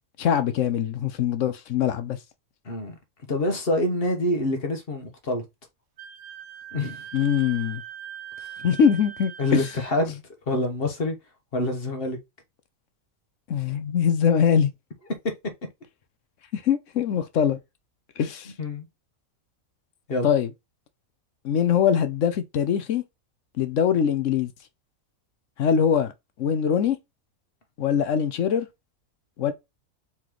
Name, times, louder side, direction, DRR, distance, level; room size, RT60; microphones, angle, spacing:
voice 1, 0.2-2.2 7.1-7.8 8.6-9.7 13.5-14.7 16.5-17.6 18.2-18.5 20.2-20.5 21.4-23.0 23.6-24.5 25.6-26.1 26.4-27.0 27.8-28.7 29.4-29.5, left 8 dB, 65° left, 1.0 m, -22 dB
voice 2, 2.6-3.0 3.3-5.4 6.7-7.0 9.4-11.1 11.5-12.2 18.6-18.9 20.1-20.3, left 1 dB, 45° left, 1.4 m, -26 dB
Wind instrument woodwind instrument, 6.0-9.9, right 9 dB, 80° right, 1.2 m, -41 dB
4.4 x 3.9 x 3.0 m
omnidirectional pair, 1.5 m